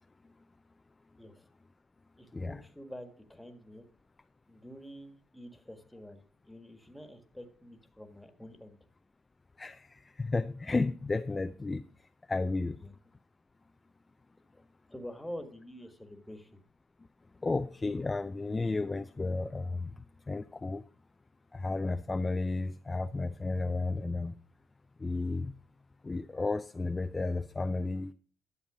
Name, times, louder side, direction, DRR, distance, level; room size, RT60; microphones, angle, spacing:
voice 1, 2.2-3.8 4.5-8.8 12.8-12.9 14.5-14.6 14.9-16.6, equal, 5° left, 7 dB, 1.7 m, -47 dB
voice 2, 9.6-11.8 12.3-12.8 17.4-20.8 21.5-24.4 25.0-25.5 26.0-28.1, left 3 dB, 25° left, 9 dB, 0.5 m, -33 dB
11.5 x 7.2 x 5.0 m, 0.43 s
cardioid pair, 90°, 0 cm